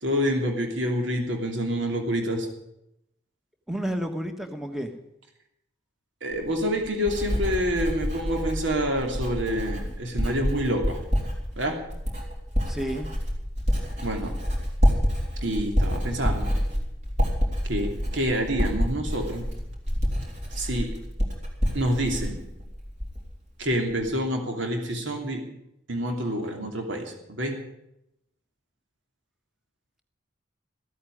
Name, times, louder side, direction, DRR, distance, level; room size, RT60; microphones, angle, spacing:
voice 1, 0.0-2.5 6.2-11.0 11.6-11.7 14.0-14.3 15.4-16.5 17.7-19.4 20.5-20.9 21.7-22.4 23.6-25.4 25.9-27.6, equal, 70° right, 3 dB, 2.9 m, -27 dB
voice 2, 3.7-4.9 12.7-13.1, equal, ahead, 6 dB, 1.3 m, -30 dB
Writing, 6.3-23.4 23.7-24.1, equal, 35° right, 3.8 m, -28 dB
14.5 x 8.6 x 9.9 m, 0.83 s
head